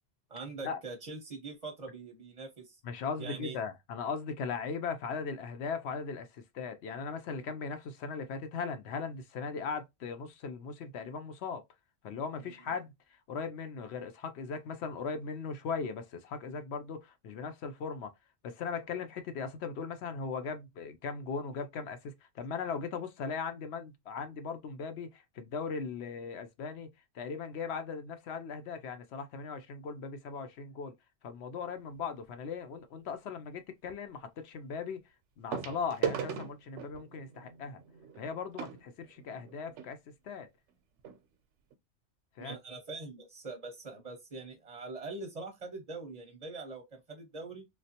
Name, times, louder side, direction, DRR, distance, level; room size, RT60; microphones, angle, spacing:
voice 1, 0.3-2.8 3.2-3.6 12.4-12.7 42.4-47.6, right 3 dB, 40° right, 0.6 m, -43 dB
voice 2, 2.8-11.6 12.0-12.9 13.3-18.1 18.4-26.9 27.1-30.9 31.2-35.0 35.4-37.8 38.2-40.0 40.2-40.5 42.4-42.6, left 5 dB, 70° left, 0.8 m, -38 dB
sound 1, 31.9-32.2 33.9-34.0 35.5-39.9 40.7-40.8 41.0-41.2 41.7-41.8, right 8 dB, 80° right, 0.9 m, -39 dB
3.2 x 2.4 x 2.7 m
omnidirectional pair, 1.2 m